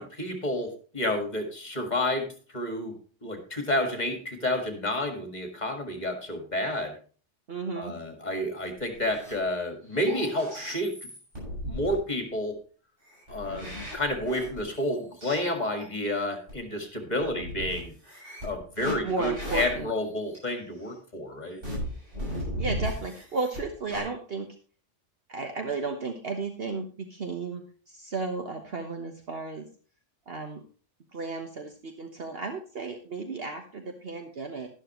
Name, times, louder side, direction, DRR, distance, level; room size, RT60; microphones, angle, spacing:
voice 1, 0.0-3.0 3.2-6.9 7.8-11.1 11.6-12.6 13.3-17.9 18.4-21.6, left 1 dB, 35° left, 4 dB, 2.0 m, -30 dB
voice 2, 7.5-7.9 19.0-19.9 22.4-24.5 25.3-29.7 30.3-30.6 31.1-34.7, right 4 dB, 55° right, 4 dB, 1.3 m, -34 dB
sound 1, 8.6-9.4 9.8-11.9 13.1-15.9 16.5-16.6 17.2-20.4 21.6-23.6 23.9-24.0, equal, 75° right, 7.4 m, -37 dB
12.0 x 11.5 x 3.1 m, 0.39 s
omnidirectional pair, 1.2 m